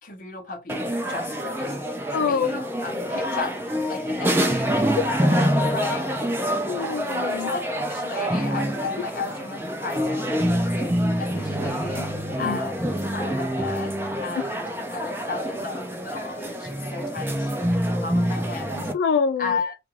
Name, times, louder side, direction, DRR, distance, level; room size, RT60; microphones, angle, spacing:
voice 1, 0.0-4.9 5.3-6.3 7.3-7.6 7.9-12.1 12.4-14.0 14.2-18.9 19.4-19.8, left 4 dB, 45° left, 0.7 m, -35 dB
sound 1, 0.7-18.9, equal, 10° right, 0.4 m, -26 dB
voice 2, 2.1-2.5 6.7-7.5 12.4-12.6 18.9-19.6, left 6 dB, 80° left, 0.3 m, -25 dB
2.4 x 2.2 x 3.1 m
head